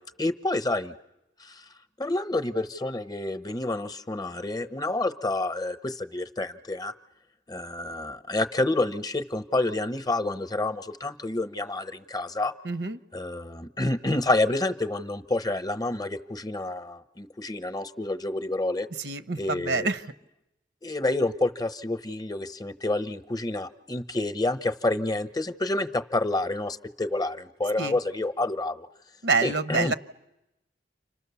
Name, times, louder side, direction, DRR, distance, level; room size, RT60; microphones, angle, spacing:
voice 1, 0.2-0.9 1.4-1.6 2.0-6.9 7.5-12.5 13.1-18.9 19.4-19.9 20.8-28.9 29.4-29.9, left 2 dB, 20° left, 11 dB, 0.9 m, -28 dB
voice 2, 12.6-13.0 19.0-20.0 27.8-27.9 29.2-29.9, right 4 dB, 75° right, 12 dB, 0.9 m, -27 dB
30.0 x 26.5 x 7.0 m, 0.92 s
head